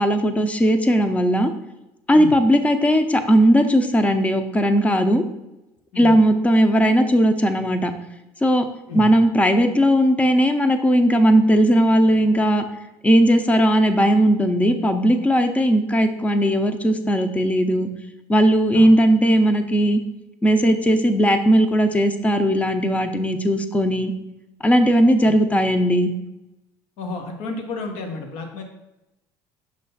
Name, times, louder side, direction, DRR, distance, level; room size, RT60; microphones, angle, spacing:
voice 1, 0.0-1.5 2.1-5.2 6.0-7.9 8.4-8.6 8.9-12.6 13.0-17.9 18.3-20.0 20.4-24.1 24.6-26.1, equal, 15° left, 8 dB, 0.7 m, -17 dB
voice 2, 27.0-28.6, left 3 dB, 75° left, 3 dB, 1.1 m, -31 dB
5.6 x 3.3 x 5.5 m, 0.94 s
supercardioid pair, 90°, 9 cm